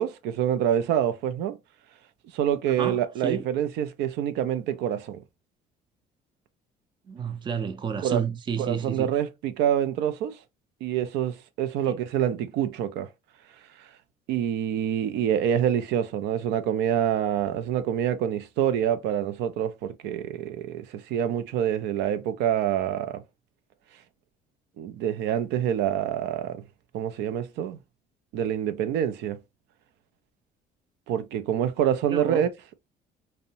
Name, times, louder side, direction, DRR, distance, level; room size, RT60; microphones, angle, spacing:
voice 1, 0.0-1.6 2.3-5.2 8.0-8.2 8.6-10.4 10.8-13.1 14.3-23.2 24.8-26.6 26.9-27.8 28.3-29.4 31.1-32.5, right 10 dB, 85° right, 0.4 m, -26 dB
voice 2, 2.7-3.4 7.1-9.1 32.1-32.5, right 6 dB, 30° right, 0.4 m, -31 dB
2.6 x 2.1 x 2.7 m
cardioid pair, 110°, 17 cm